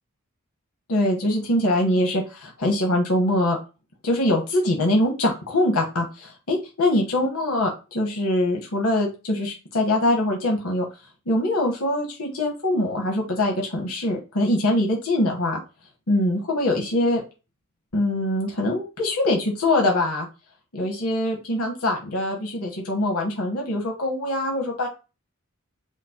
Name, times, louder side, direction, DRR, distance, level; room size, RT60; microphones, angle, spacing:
voice 1, 0.9-3.6 4.0-10.9 11.3-15.6 16.1-17.2 17.9-20.3 20.7-24.9, left 1 dB, 80° left, 1 dB, 1.2 m, -23 dB
5.1 x 2.1 x 4.3 m, 0.30 s
head